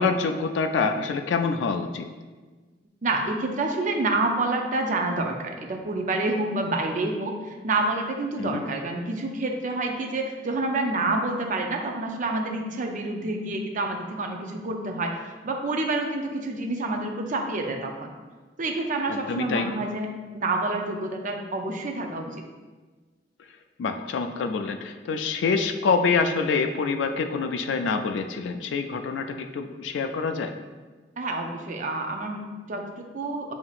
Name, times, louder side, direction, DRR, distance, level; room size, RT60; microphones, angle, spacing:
voice 1, 0.0-2.1 8.4-8.6 19.1-19.7 23.8-30.5, left 4 dB, 75° left, 6 dB, 0.3 m, -26 dB
voice 2, 3.0-15.1 15.4-18.1 18.6-20.1 20.3-22.3 31.2-33.5, right 2 dB, 45° right, 2 dB, 0.5 m, -28 dB
7.1 x 2.8 x 2.4 m, 1.3 s
head